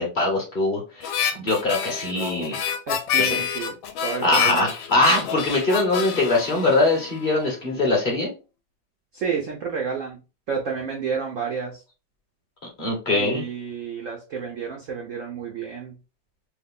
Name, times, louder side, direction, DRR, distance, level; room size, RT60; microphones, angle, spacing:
voice 1, 0.0-2.6 3.2-3.4 4.2-8.3 12.8-13.4, left 2 dB, 35° left, -1 dB, 0.8 m, -22 dB
Harmonica, 1.0-7.5, left 8 dB, 85° left, 1.3 m, -28 dB
voice 2, 2.9-3.7 4.0-4.7 9.1-10.2 10.5-11.7 13.2-15.9, right 6 dB, 80° right, 0 dB, 0.7 m, -30 dB
3.4 x 2.1 x 3.5 m, 0.31 s
omnidirectional pair, 2.1 m